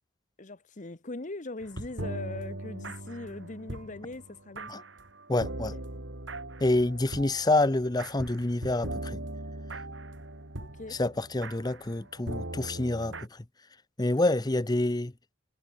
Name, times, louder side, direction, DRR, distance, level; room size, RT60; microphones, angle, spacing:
voice 1, 0.4-4.8 5.7-5.8 10.6-11.0, left 2 dB, 40° left, 1.0 m, -41 dB
sound 1, 1.6-13.3, right 1 dB, 65° right, 3.5 m, -40 dB
voice 2, 5.3-5.7 6.6-9.2 10.9-13.1 14.0-15.1, left 2 dB, 20° left, 0.7 m, -27 dB
head